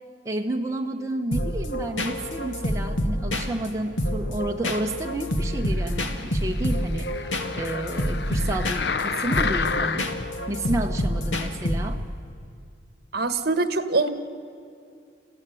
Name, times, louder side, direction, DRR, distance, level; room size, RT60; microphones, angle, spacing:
voice 1, 0.2-10.1 10.5-12.0, right 1 dB, 15° right, 1 dB, 0.8 m, -31 dB
sound 1, 1.3-12.2, equal, 90° left, 2.1 m, -28 dB
sound 2, 5.7-10.3 10.9-11.0, left 5 dB, 60° left, 0.7 m, -30 dB
voice 2, 13.1-14.1, right 3 dB, 55° right, 10 dB, 1.3 m, -23 dB
28.0 x 15.5 x 9.1 m, 2.4 s
head